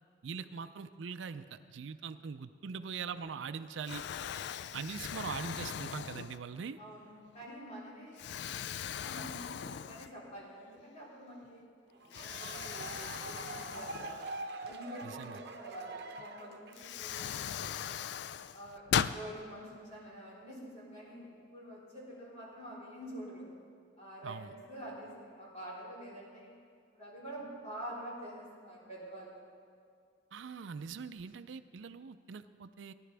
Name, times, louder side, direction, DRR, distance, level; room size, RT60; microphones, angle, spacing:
voice 1, 0.2-4.0 4.7-6.8 15.0-15.4 18.9-19.1 24.2-24.5 30.3-32.9, right 6 dB, 85° right, 11 dB, 0.4 m, -42 dB
Explosion, 3.2-3.5 3.9-6.7 7.3-7.5 8.2-10.4 10.8-10.9 12.1-14.8 16.2-16.3 16.7-19.2, left 8 dB, 65° left, 0.3 m, -39 dB
voice 2, 6.8-7.1 7.3-8.4 9.0-11.6 12.1-14.3 14.6-17.9 18.5-23.5 24.0-26.5 26.9-29.4, right 1 dB, 40° left, -7 dB, 3.9 m, -47 dB
sound 1, 11.9-17.0, right 3 dB, 60° right, 0.9 m, -44 dB
20.0 x 10.5 x 3.4 m, 2.2 s
head